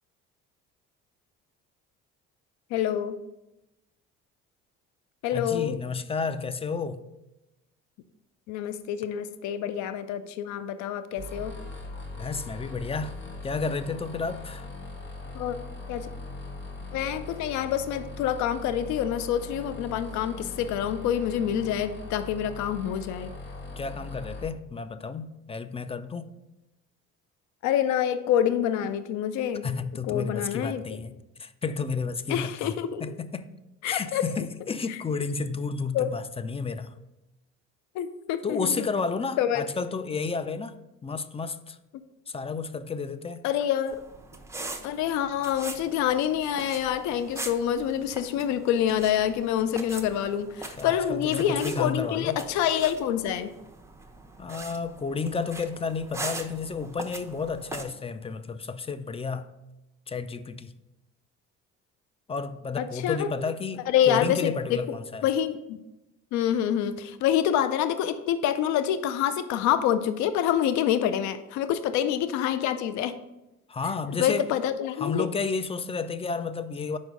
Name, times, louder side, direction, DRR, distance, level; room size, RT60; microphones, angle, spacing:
voice 1, 2.7-3.2 5.2-5.8 8.5-11.5 15.4-15.6 15.9-16.1 16.9-23.3 27.6-29.7 30.1-30.8 32.3-33.0 33.8-34.2 34.9-35.0 35.9-36.1 38.0-38.9 39.4-39.6 43.4-44.0 44.8-53.5 62.8-63.3 63.9-64.8 65.2-65.8 66.3-73.2 74.2-75.3, left 10 dB, 70° left, 0.5 m, -27 dB
voice 2, 5.3-7.0 12.2-13.1 13.4-14.7 23.8-26.3 29.6-33.5 33.9-36.9 38.4-41.8 42.3-43.4 50.8-52.4 54.4-59.5 60.1-60.7 62.3-65.3 73.7-74.5 75.0-77.0, left 4 dB, 20° left, 0.4 m, -32 dB
sound 1, 11.2-24.4, left 3 dB, 40° left, 1.6 m, -40 dB
sound 2, 43.9-57.8, right 2 dB, 10° right, 0.8 m, -42 dB
5.3 x 4.6 x 5.1 m
supercardioid pair, 70°, 30 cm